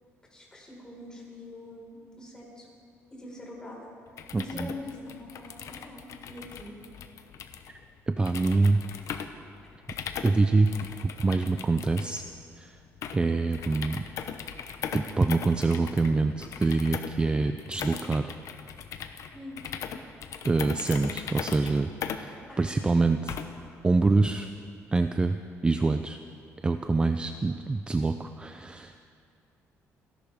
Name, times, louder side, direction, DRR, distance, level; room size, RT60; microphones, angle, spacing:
voice 1, 0.3-2.7 3.2-3.9 4.3-6.7 19.3-19.6 22.5-23.2, left 1 dB, 15° left, -3 dB, 4.9 m, -43 dB
sound 1, 4.1-23.7, left 8 dB, 65° left, 0.9 m, -40 dB
voice 2, 4.3-4.7 8.1-8.8 10.2-10.7 11.0-12.2 12.6-12.8 13.1-14.0 14.9-18.3 20.4-23.3 23.8-24.5 24.9-26.2 26.6-29.0, right 3 dB, 15° right, 8 dB, 0.4 m, -25 dB
29.0 x 11.5 x 3.6 m, 2.3 s
cardioid pair, 115°, 6 cm